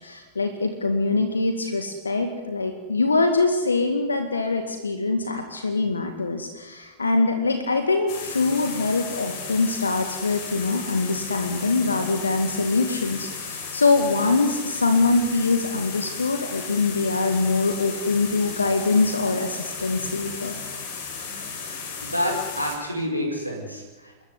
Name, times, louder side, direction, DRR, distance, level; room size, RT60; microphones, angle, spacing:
voice 1, 0.0-20.5, left 3 dB, 75° left, 7 dB, 2.1 m, -23 dB
sound 1, 8.1-22.8, left 5 dB, 50° left, 5.6 m, -35 dB
voice 2, 22.0-24.2, left 1 dB, 90° right, -1 dB, 4.8 m, -28 dB
28.0 x 14.0 x 9.7 m, 1.2 s
figure-of-eight pair, 90°, 0 cm